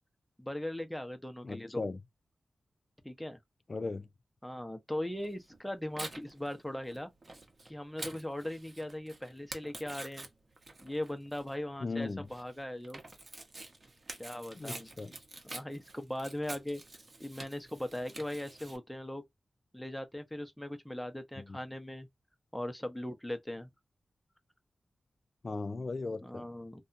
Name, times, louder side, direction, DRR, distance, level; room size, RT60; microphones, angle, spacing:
voice 1, 0.4-1.9 3.0-3.4 4.4-7.1 7.7-10.3 10.8-13.0 14.2-14.9 15.4-16.8 17.2-19.2 19.7-22.1 22.5-23.7 26.2-26.8, left 1 dB, 5° left, 0.7 m, -39 dB
voice 2, 1.4-2.0 3.7-4.1 11.8-12.3 14.5-15.1 21.4-21.6 25.4-26.5, left 3 dB, 50° left, 0.3 m, -37 dB
Tearing, 5.2-18.8, right 2 dB, 45° right, 0.8 m, -48 dB
2.7 x 2.2 x 2.5 m
cardioid pair, 50°, 0 cm